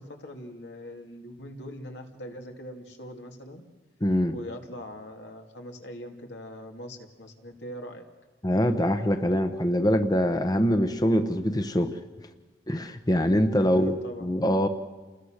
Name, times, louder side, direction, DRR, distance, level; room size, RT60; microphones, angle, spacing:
voice 1, 0.0-3.6 4.3-8.1 13.6-14.3, equal, 75° left, 3 dB, 2.6 m, -42 dB
voice 2, 4.0-4.3 8.4-12.0 12.7-14.7, equal, 20° left, 8 dB, 1.0 m, -24 dB
29.0 x 20.5 x 6.5 m, 1.3 s
head